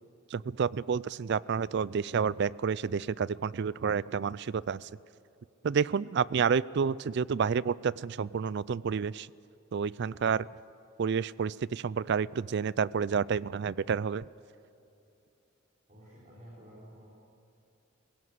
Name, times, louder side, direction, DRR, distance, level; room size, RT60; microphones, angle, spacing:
voice 1, 0.3-4.9 5.6-9.3 9.7-10.5 11.0-14.3, right 6 dB, 55° right, 21 dB, 0.4 m, -29 dB
voice 2, 15.9-17.1, equal, 35° right, -8 dB, 4.6 m, -51 dB
21.5 x 17.0 x 8.0 m, 2.8 s
head